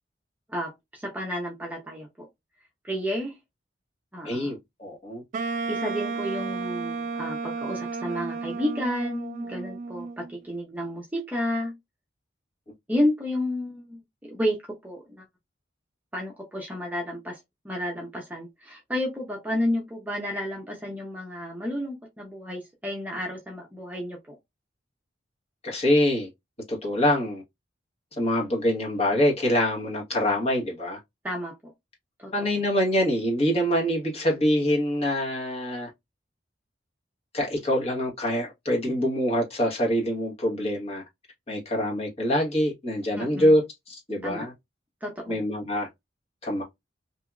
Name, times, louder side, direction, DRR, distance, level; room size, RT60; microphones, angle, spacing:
voice 1, 0.5-2.3 2.8-3.3 4.1-4.6 5.7-11.8 12.9-14.6 14.8-15.2 16.1-17.4 17.6-24.4 31.2-31.6 32.2-32.5 43.2-43.6 44.2-44.5 45.0-45.4, left 1 dB, 10° right, 0.6 m, -31 dB
voice 2, 4.2-5.2 25.6-26.3 26.7-27.4 28.2-31.0 32.3-35.9 37.3-41.0 41.5-43.6 43.9-44.5 45.3-45.9 46.4-46.6, equal, 35° left, 1.2 m, -25 dB
Wind instrument woodwind instrument, 5.3-10.3, right 4 dB, 45° right, 0.3 m, -32 dB
2.8 x 2.6 x 2.3 m
head